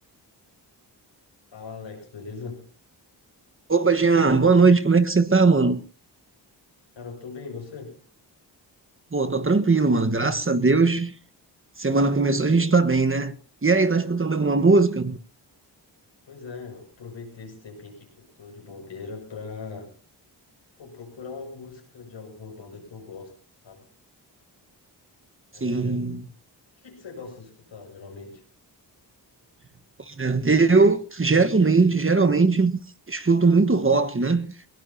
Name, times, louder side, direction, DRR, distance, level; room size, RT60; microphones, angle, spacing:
voice 1, 1.5-2.7 6.9-8.0 14.3-14.5 16.3-19.9 20.8-23.3 23.6-23.9 25.5-26.0 26.8-28.4, left 4 dB, 80° left, 6.7 m, -40 dB
voice 2, 3.7-5.8 9.1-11.1 11.8-13.3 13.6-15.2 25.6-26.3 30.1-32.8 33.1-34.5, right 4 dB, 30° right, 1.5 m, -20 dB
21.5 x 18.5 x 2.9 m
cardioid pair, 45°, 44 cm